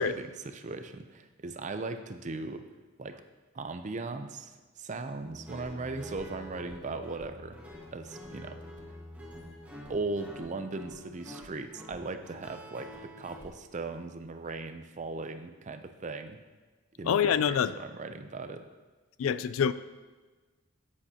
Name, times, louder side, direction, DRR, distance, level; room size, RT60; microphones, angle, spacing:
voice 1, 0.0-2.7 3.0-3.2 3.5-7.6 7.9-8.6 9.9-16.4 17.0-18.6, right 3 dB, 35° right, 9 dB, 0.5 m, -38 dB
Guitar, 5.2-13.5, left 1 dB, 10° right, 1.5 m, -47 dB
voice 2, 17.0-17.8 19.2-19.7, left 8 dB, 75° left, 15 dB, 0.3 m, -26 dB
10.5 x 8.5 x 2.8 m, 1.3 s
head